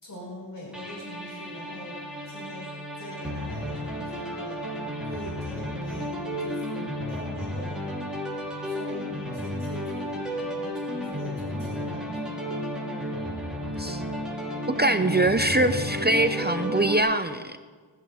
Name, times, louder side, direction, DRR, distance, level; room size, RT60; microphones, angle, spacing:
voice 1, 0.0-2.0 2.3-2.7 3.0-4.8 5.0-7.8 8.6-12.4, equal, 45° left, -5 dB, 5.5 m, -42 dB
sound 1, 0.7-17.0, equal, ahead, 3.4 m, -33 dB
voice 2, 14.8-17.6, right 2 dB, 20° right, 9 dB, 0.6 m, -23 dB
20.0 x 13.5 x 3.6 m, 1.5 s
wide cardioid pair, 75°, 46 cm